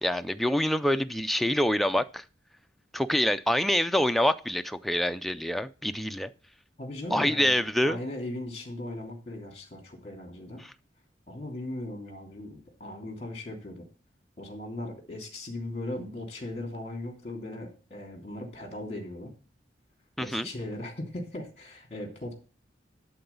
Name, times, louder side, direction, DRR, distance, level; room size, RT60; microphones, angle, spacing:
voice 1, 0.0-2.2 2.9-6.3 7.1-8.0 20.2-20.5, left 1 dB, ahead, 0.4 m, -26 dB
voice 2, 6.8-10.6 11.3-13.9 14.4-19.3 20.2-22.3, left 1 dB, 35° left, 3.0 m, -38 dB
11.5 x 3.9 x 7.0 m
head